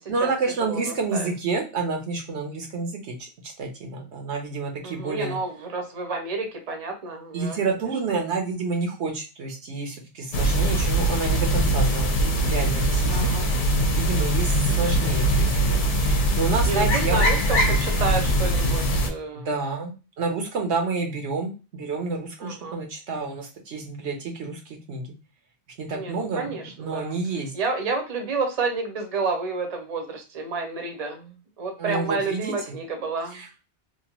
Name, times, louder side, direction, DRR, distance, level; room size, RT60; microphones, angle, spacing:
voice 1, 0.1-3.1 3.4-5.4 7.3-13.3 13.9-17.2 19.3-24.6 24.9-25.1 25.8-27.5 31.8-32.8 33.3-33.7, right 4 dB, 75° right, 2 dB, 1.0 m, -29 dB
voice 2, 0.6-1.3 4.8-7.6 13.1-13.5 16.7-19.5 22.4-22.8 25.9-27.1 27.5-33.4, right 3 dB, 40° right, 4 dB, 0.7 m, -30 dB
sound 1, 10.3-19.1, right 1 dB, 55° left, 0.7 m, -22 dB
2.8 x 2.2 x 2.9 m, 0.32 s
omnidirectional pair, 1.2 m